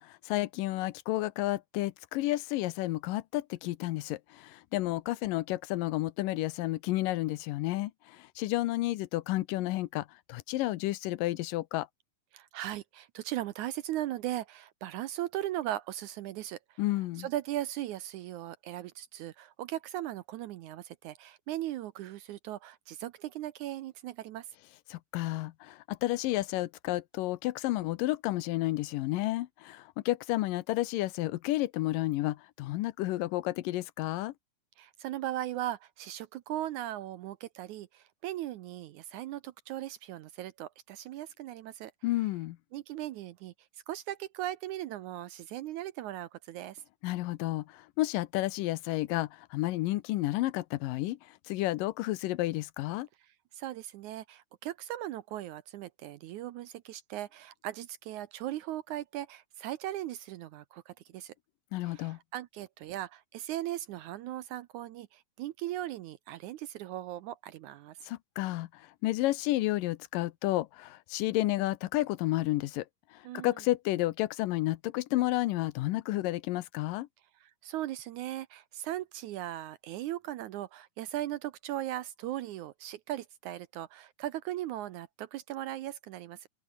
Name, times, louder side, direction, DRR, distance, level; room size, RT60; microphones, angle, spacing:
voice 1, 0.0-11.9 16.8-17.3 24.9-34.3 42.0-42.6 47.0-51.2 51.5-53.1 61.7-62.2 68.1-68.7 69.0-72.9 73.3-77.1, left 17 dB, 80° left, 2.4 m, -31 dB
voice 2, 12.3-16.8 17.2-24.5 34.8-41.9 42.7-43.5 43.9-46.8 53.2-61.3 61.8-68.0 73.2-73.5 77.4-86.5, right 13 dB, 75° right, 1.9 m, -38 dB
open air
omnidirectional pair, 4.0 m